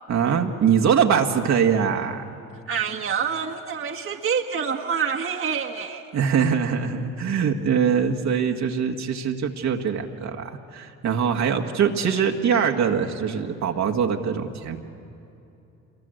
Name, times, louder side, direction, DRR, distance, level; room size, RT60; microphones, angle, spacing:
voice 1, 0.1-2.2 6.1-14.8, right 7 dB, 55° right, 2 dB, 1.9 m, -23 dB
voice 2, 2.7-6.1, right 6 dB, 40° right, 1 dB, 1.8 m, -27 dB
27.0 x 23.0 x 7.9 m, 2.8 s
supercardioid pair, 70°, 33 cm